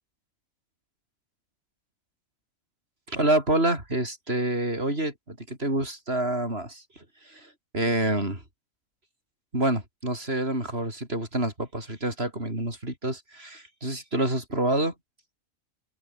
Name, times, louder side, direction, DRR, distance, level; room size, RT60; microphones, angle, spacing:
voice 1, 3.1-8.4 9.5-14.9, right 1 dB, 45° right, 8.0 m, -27 dB
open air
omnidirectional pair, 1.4 m